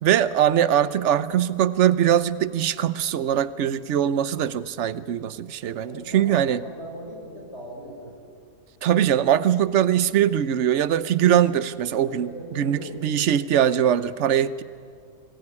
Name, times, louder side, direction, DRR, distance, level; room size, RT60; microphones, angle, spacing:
voice 1, 0.0-6.6 8.8-12.3 12.6-14.6, right 10 dB, 55° right, 15 dB, 1.0 m, -21 dB
voice 2, 5.9-8.1 12.0-13.2, equal, 45° left, -3 dB, 5.9 m, -39 dB
26.5 x 19.5 x 9.9 m, 2.3 s
omnidirectional pair, 1.6 m